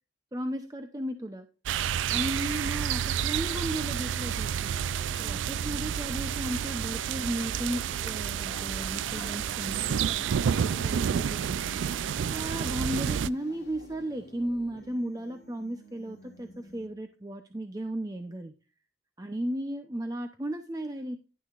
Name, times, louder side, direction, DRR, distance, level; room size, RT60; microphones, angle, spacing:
voice 1, 0.3-1.5 2.1-4.7 5.2-18.5 19.2-21.2, right 1 dB, 20° right, 6 dB, 0.7 m, -35 dB
sound 1, 1.7-13.3, right 8 dB, 85° right, 0.3 m, -30 dB
sound 2, 2.0-17.1, left 1 dB, 60° left, 1.4 m, -50 dB
sound 3, 7.4-12.9, left 2 dB, 15° left, 2.2 m, -51 dB
11.0 x 9.8 x 2.5 m, 0.33 s
head